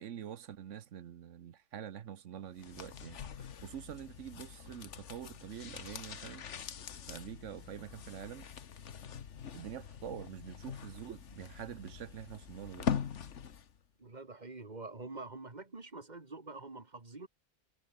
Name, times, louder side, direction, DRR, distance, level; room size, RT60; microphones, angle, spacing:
voice 1, 0.0-6.4 7.1-8.5 9.5-12.9, right 9 dB, 85° right, 1.3 m, -46 dB
sound 1, 2.6-13.8 14.0-14.1, left 7 dB, 75° left, 1.5 m, -43 dB
voice 2, 14.0-17.3, right 3 dB, 35° right, 2.4 m, -46 dB
omnidirectional pair, 1.2 m